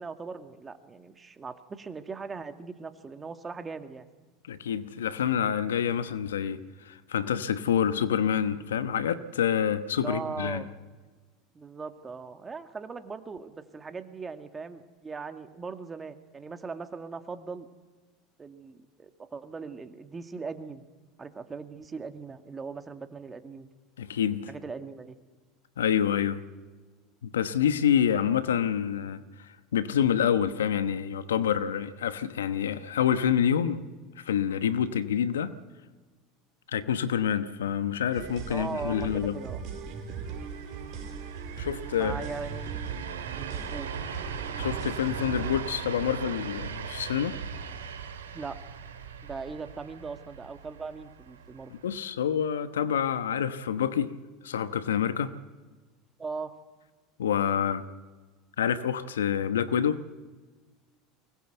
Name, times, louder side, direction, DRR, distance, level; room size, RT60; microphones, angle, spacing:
voice 1, 0.0-4.1 10.0-10.7 11.5-17.7 18.4-20.8 21.2-23.7 24.5-25.2 38.5-39.6 41.9-42.8 43.4-43.9 48.3-48.6 49.2-51.7 56.2-56.5, right 4 dB, 25° right, 8 dB, 2.0 m, -39 dB
voice 2, 4.5-6.6 6.8-10.6 24.0-24.4 25.8-26.4 27.2-33.8 34.2-35.5 36.7-39.4 41.6-42.2 44.5-47.4 51.7-54.1 54.4-55.3 57.2-57.8 58.6-60.0, left 8 dB, 85° left, 13 dB, 1.0 m, -27 dB
sound 1, 38.1-45.8, right 6 dB, 55° right, 5.1 m, -39 dB
sound 2, 40.0-52.0, right 7 dB, 85° right, 2.3 m, -39 dB
23.5 x 20.0 x 8.0 m, 1.3 s
hypercardioid pair, 85°, 0 cm